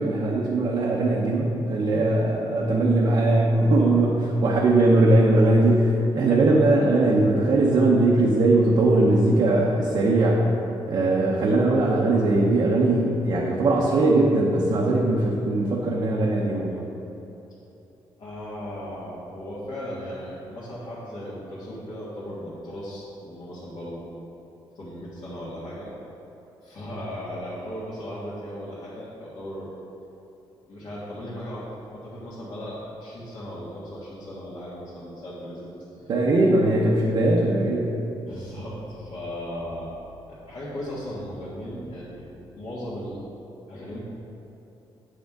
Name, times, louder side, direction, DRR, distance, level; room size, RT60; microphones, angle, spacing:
voice 1, 0.0-10.5 10.9-16.9 36.1-38.0, right 2 dB, 50° right, -4 dB, 0.8 m, -20 dB
voice 2, 18.2-24.2 24.7-25.9 26.6-29.7 30.7-36.1 38.3-40.0 40.3-42.3 42.5-43.3 43.7-44.0, equal, 55° left, -10 dB, 1.7 m, -37 dB
9.1 x 6.5 x 3.6 m, 3.0 s
wide cardioid pair, 165°, 9 cm